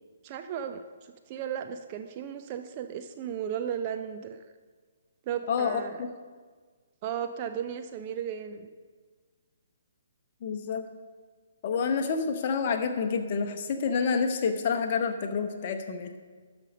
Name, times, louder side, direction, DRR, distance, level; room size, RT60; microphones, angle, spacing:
voice 1, 0.2-4.4 5.3-6.0 7.0-8.7, right 8 dB, 30° right, 7 dB, 0.4 m, -35 dB
voice 2, 5.5-6.1 10.4-10.9 11.6-16.1, left 5 dB, 35° left, 6 dB, 0.9 m, -28 dB
12.5 x 5.3 x 5.3 m, 1.5 s
figure-of-eight pair, 130°, 0 cm